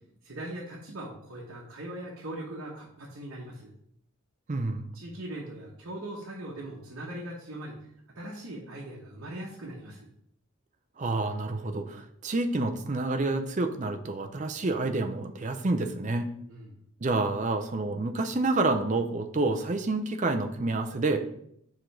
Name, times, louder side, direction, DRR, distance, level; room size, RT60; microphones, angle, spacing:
voice 1, 0.2-3.7 4.9-7.8 8.1-10.1 16.4-16.7, right 1 dB, 60° right, -4 dB, 1.1 m, -40 dB
voice 2, 4.5-4.9 11.0-16.3 17.0-21.2, right 2 dB, 35° right, 6 dB, 0.5 m, -28 dB
5.0 x 3.8 x 5.8 m, 0.71 s
head